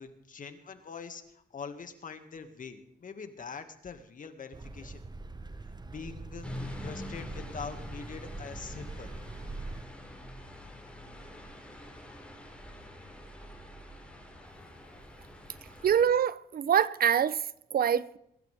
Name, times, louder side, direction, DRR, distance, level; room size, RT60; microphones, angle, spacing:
voice 1, 0.0-5.0 5.8-6.5 6.8-9.1, left 5 dB, 55° left, 2.1 m, -43 dB
sound 1, 4.5-9.8, right 3 dB, 25° right, 1.0 m, -43 dB
sound 2, 6.4-16.1, left 1 dB, 5° left, 7.1 m, -45 dB
voice 2, 15.8-17.4 17.7-18.2, right 8 dB, 70° right, 0.8 m, -25 dB
22.5 x 12.0 x 3.6 m
cardioid pair, 75°, 16 cm